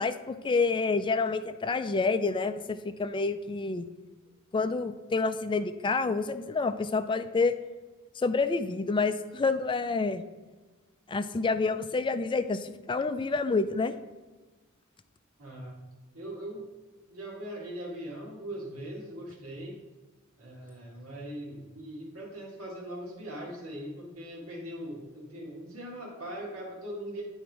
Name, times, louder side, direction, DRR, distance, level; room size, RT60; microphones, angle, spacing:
voice 1, 0.0-3.9 4.5-7.5 8.2-10.2 11.1-13.9, left 4 dB, 25° left, 11 dB, 0.4 m, -28 dB
voice 2, 15.4-15.8 16.1-16.7 17.1-19.8 20.4-27.2, right 1 dB, 80° right, -3 dB, 1.8 m, -40 dB
10.0 x 3.6 x 4.7 m, 1.2 s
head